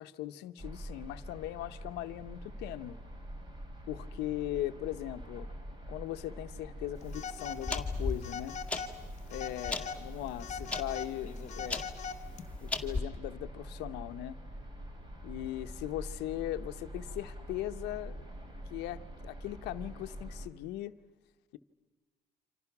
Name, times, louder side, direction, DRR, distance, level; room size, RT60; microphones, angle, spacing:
voice 1, 0.0-3.0 3.9-5.5 5.9-8.6 9.3-11.9 12.6-14.4 15.2-18.3 18.7-21.0, left 14 dB, 90° left, 10 dB, 0.9 m, -39 dB
sound 1, 0.6-20.5, equal, 25° right, 3.5 m, -45 dB
Telephone, 7.1-7.9 8.2-8.9 9.3-10.0 10.4-12.4, left 6 dB, 40° left, 1.3 m, -41 dB
sound 2, 7.1-13.0, left 3 dB, 5° left, 1.9 m, -38 dB
29.0 x 26.0 x 6.0 m, 1.4 s
cardioid pair, 110°, 17 cm